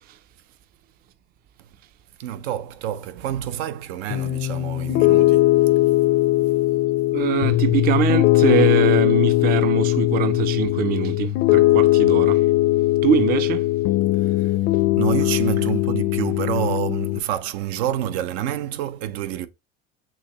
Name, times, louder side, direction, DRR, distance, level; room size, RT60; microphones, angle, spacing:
voice 1, 2.2-5.7 14.2-14.5 15.0-19.5, right 10 dB, 80° right, 0.6 m, -28 dB
Piano, 4.1-17.2, left 16 dB, 40° left, 0.4 m, -19 dB
voice 2, 7.1-12.4 13.0-13.7, right 9 dB, 30° right, 0.4 m, -23 dB
6.3 x 2.8 x 2.9 m
supercardioid pair, 125°, 32 cm